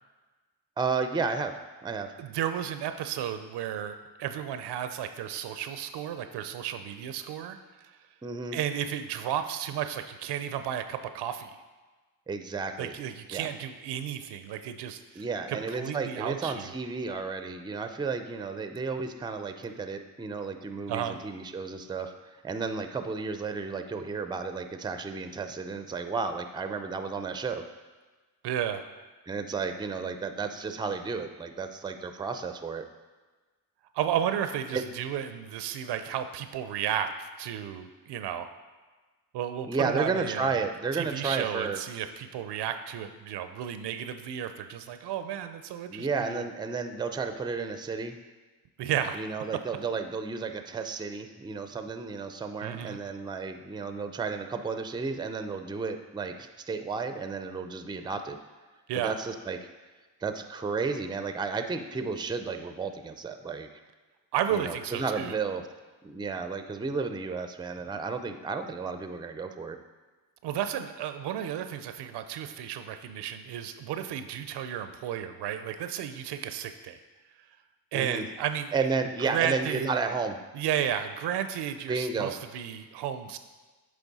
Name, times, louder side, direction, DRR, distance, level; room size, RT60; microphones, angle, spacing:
voice 1, 0.8-2.1 8.2-8.6 12.3-13.0 13.3-13.5 15.2-27.6 29.3-32.9 34.7-34.8 39.7-41.8 45.9-48.2 49.1-58.4 59.0-59.7 60.2-63.7 64.5-65.7 66.0-69.8 77.9-78.2 78.7-80.4 81.9-82.4, right 4 dB, 10° right, 8 dB, 0.4 m, -32 dB
voice 2, 2.2-7.9 8.5-11.6 12.8-16.7 20.9-21.2 28.4-28.9 33.9-38.5 39.3-40.7 41.0-46.4 48.8-49.2 52.6-53.0 58.9-59.1 64.3-65.4 70.4-77.0 77.9-78.9 79.3-79.9 80.5-83.4, right 9 dB, 75° right, 9 dB, 0.5 m, -33 dB
8.3 x 3.4 x 4.1 m, 1.3 s
supercardioid pair, 60°, 41 cm